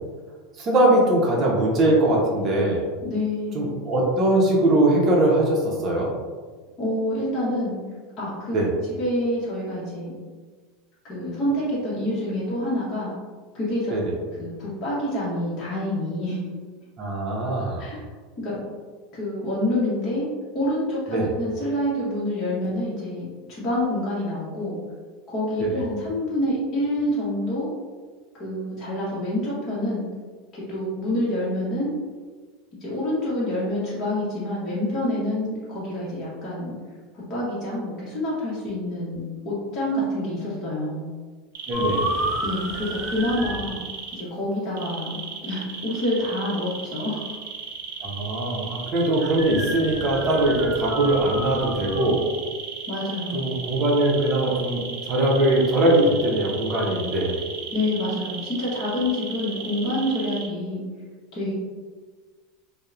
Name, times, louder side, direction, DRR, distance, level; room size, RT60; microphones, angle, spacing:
voice 1, 0.6-2.9 3.5-6.1 8.5-8.7 13.9-14.1 17.0-17.8 21.1-21.3 25.6-25.8 41.7-42.1 48.0-52.2 53.3-54.8 55.1-57.4, right 1 dB, 35° right, -2 dB, 0.6 m, -21 dB
voice 2, 3.0-3.7 6.8-7.8 8.2-8.6 9.0-10.1 11.0-13.1 13.5-13.9 14.4-16.4 17.8-18.1 18.4-18.6 19.1-20.3 20.5-24.8 25.3-27.7 28.3-30.0 30.5-31.9 32.8-36.7 37.1-41.0 42.4-43.8 44.1-47.2 49.2-49.3 52.9-53.6 57.7-60.8 61.3-61.5, left 1 dB, 35° left, -8 dB, 0.9 m, -27 dB
sound 1, 41.5-44.2 44.8-60.5, right 6 dB, 80° right, 0.4 m, -35 dB
sound 2, 41.7-43.7 49.3-52.1, equal, 15° right, 1.0 m, -31 dB
2.8 x 2.0 x 2.4 m, 1.5 s
supercardioid pair, 140°, 0 cm